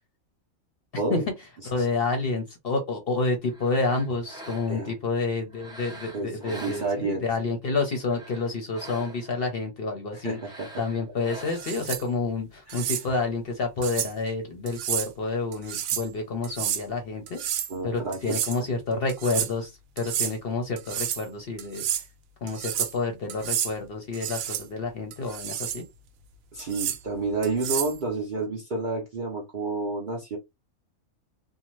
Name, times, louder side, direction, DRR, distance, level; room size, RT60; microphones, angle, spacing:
voice 1, 0.9-1.2 4.7-4.9 6.1-7.3 10.1-10.7 12.7-12.9 17.7-18.7 26.5-30.4, right 3 dB, 50° right, 0.6 m, -30 dB
voice 2, 1.6-10.4 10.8-17.4 17.8-21.8 22.4-25.8, left 3 dB, 55° left, 0.7 m, -29 dB
sound 1, 3.4-5.0 5.5-7.4 7.9-9.4 10.3-11.9, right 1 dB, 5° right, 0.5 m, -44 dB
sound 2, 11.5-12.0 12.7-13.0 13.8-14.1 14.7-15.1 15.5-16.1 16.4-16.8 17.3-17.7 18.1-18.6 19.1-19.5 20.0-20.3 20.8-21.2 21.6-22.0 22.5-23.0 23.3-23.7 24.1-24.6 25.1-25.8 26.6-27.0 27.4-28.0, right 10 dB, 75° right, 1.0 m, -30 dB
2.7 x 2.1 x 3.0 m
omnidirectional pair, 1.5 m